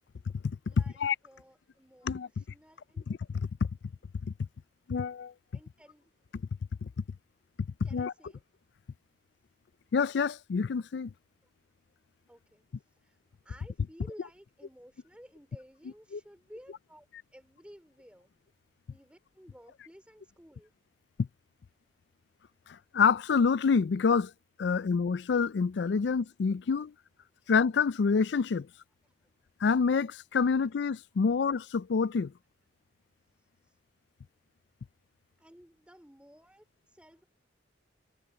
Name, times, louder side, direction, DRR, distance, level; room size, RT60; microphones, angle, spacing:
voice 1, 0.6-3.1 5.5-6.1 7.8-8.4 11.4-11.5 12.3-18.3 18.9-20.7 27.4-27.5 29.0-29.1 33.4-33.8 35.4-37.2, equal, 5° right, 3.5 m, -55 dB
voice 2, 2.0-2.4 3.1-3.7 4.9-5.3 6.8-6.9 7.9-8.1 9.9-11.1 16.1-16.2 21.2-21.3 22.9-24.3 24.6-26.9 27.5-28.7 29.6-32.3, left 5 dB, 65° left, 0.4 m, -27 dB
head